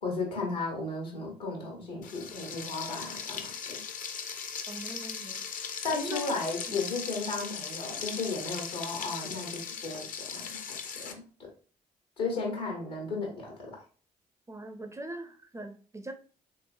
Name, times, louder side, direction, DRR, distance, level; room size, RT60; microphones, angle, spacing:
voice 1, 0.0-3.8 5.8-11.5 12.2-13.8, left 3 dB, 80° left, 0 dB, 1.1 m, -35 dB
Frying (food), 2.0-11.1, left 6 dB, 40° left, 0.5 m, -38 dB
voice 2, 4.7-5.4 5.9-6.4 6.7-6.8 14.5-16.1, right 2 dB, 15° right, 7 dB, 0.4 m, -41 dB
3.2 x 2.9 x 2.5 m, 0.39 s
figure-of-eight pair, 40°, 21 cm